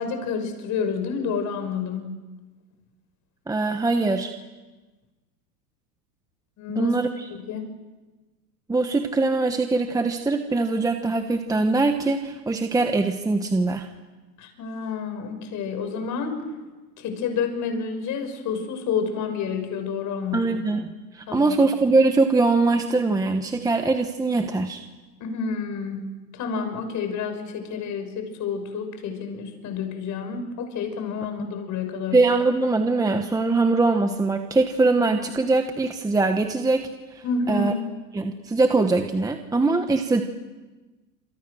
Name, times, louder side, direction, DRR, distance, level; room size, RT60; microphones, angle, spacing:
voice 1, 0.0-2.1 6.6-6.9 7.3-7.7 14.4-16.4 17.0-20.6 21.3-21.6 25.2-32.2 37.2-37.7, left 5 dB, 35° left, 6 dB, 6.1 m, -29 dB
voice 2, 3.5-4.3 6.7-7.3 8.7-13.9 20.3-20.9 21.1-24.8 32.1-37.7 38.1-40.2, right 3 dB, 5° right, 6 dB, 1.2 m, -22 dB
27.5 x 27.5 x 6.5 m, 1.2 s
hypercardioid pair, 125°, 49 cm